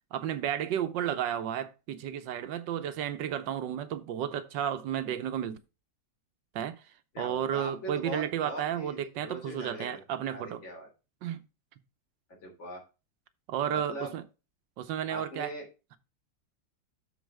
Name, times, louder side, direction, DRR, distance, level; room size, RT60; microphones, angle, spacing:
voice 1, 0.1-5.6 6.5-6.8 7.2-10.6 11.2-11.4 13.5-14.2 14.8-15.5, right 10 dB, 75° right, 1.4 m, -32 dB
voice 2, 7.1-10.0 10.3-10.9 12.4-12.8 13.7-14.1 15.1-15.7, equal, 80° left, 4.0 m, -41 dB
12.5 x 4.5 x 3.3 m
omnidirectional pair, 2.0 m